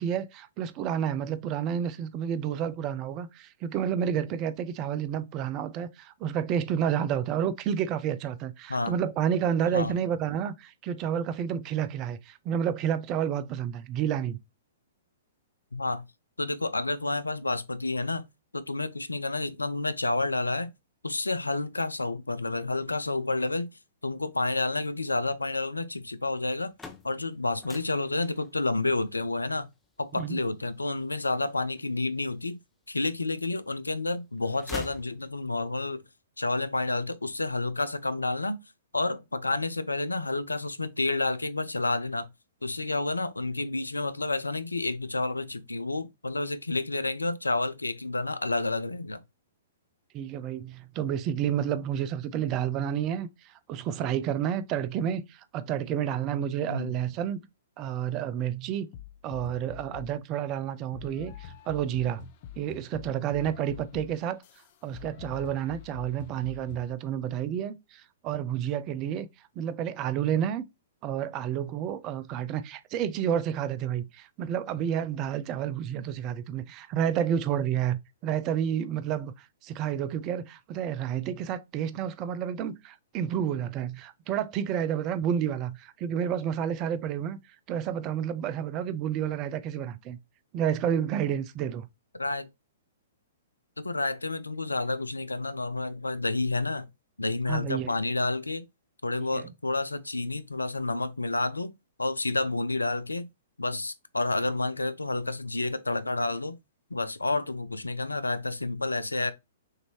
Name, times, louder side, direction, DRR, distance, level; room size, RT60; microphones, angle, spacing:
voice 1, 0.0-14.4 30.2-30.4 50.1-57.4 57.8-58.9 59.2-62.3 62.6-64.4 64.8-69.3 69.6-70.6 71.0-87.4 87.7-90.2 90.5-91.9 97.5-98.0 99.3-99.5, right 9 dB, 30° right, 0.5 m, -30 dB
voice 2, 15.7-16.0 16.4-18.2 18.5-20.7 21.0-23.7 24.0-26.7 27.0-29.7 30.0-32.6 32.9-36.0 36.4-38.6 38.9-42.3 42.6-49.2 56.7-56.9 92.1-92.5 93.8-96.9 97.2-98.6 99.0-101.7 102.0-103.3 103.6-106.6 106.9-109.3, left 2 dB, 85° left, 0.5 m, -30 dB
sound 1, 26.7-32.4 33.0-33.8 34.1-35.7, left 4 dB, 10° left, 0.9 m, -46 dB
sound 2, 58.9-60.2 60.9-66.9, left 9 dB, 45° left, 0.6 m, -45 dB
6.4 x 2.7 x 3.0 m
figure-of-eight pair, 110°, 0 cm